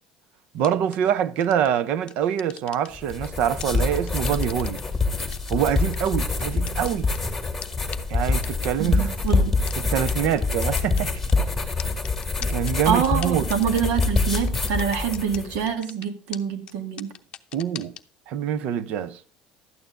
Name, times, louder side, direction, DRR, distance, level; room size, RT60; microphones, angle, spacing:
voice 1, 0.5-4.8 5.5-7.1 8.1-9.1 9.9-11.2 12.4-13.5 17.5-17.9 18.3-19.2, right 9 dB, 55° right, 0.7 m, -25 dB
sound 1, 0.6-1.0 1.4-1.7 2.1-3.3 3.6-4.8 5.2-7.2 7.6-7.7 7.9-8.0 8.4-8.9 9.3-9.4 9.7-9.8 10.1-10.2 10.4-11.3 11.8-15.4 15.7-16.1 16.3-16.4 16.7-16.8 17.0-18.0, left 11 dB, 35° left, 0.7 m, -39 dB
sound 2, 2.9-15.6, left 3 dB, 5° left, 2.2 m, -25 dB
voice 2, 8.8-9.5 12.9-17.1, right 7 dB, 70° right, 2.1 m, -25 dB
12.0 x 9.1 x 3.8 m
cardioid pair, 170°, 3 cm